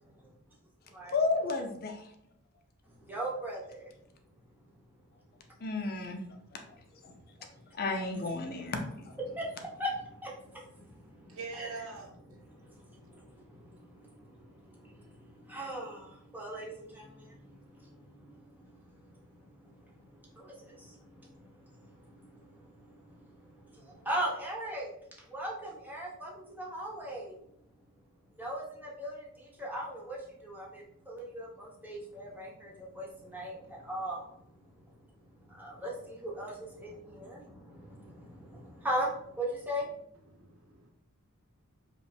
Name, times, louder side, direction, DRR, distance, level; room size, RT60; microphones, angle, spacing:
voice 1, 1.0-2.1 5.6-6.2 6.7-6.8 7.0-7.1 7.8-8.8, left 3 dB, 45° left, 4 dB, 0.5 m, -32 dB
voice 2, 3.0-3.9 8.5-8.7 9.2-11.7 12.3-24.9 25.3-27.4 28.4-34.3 35.4-37.4 37.8-40.0, right 1 dB, 10° right, -5 dB, 1.0 m, -40 dB
voice 3, 11.1-12.4 13.0-13.2 40.3-40.9, right 4 dB, 75° right, 1 dB, 0.9 m, -44 dB
5.0 x 2.2 x 3.4 m, 0.73 s
head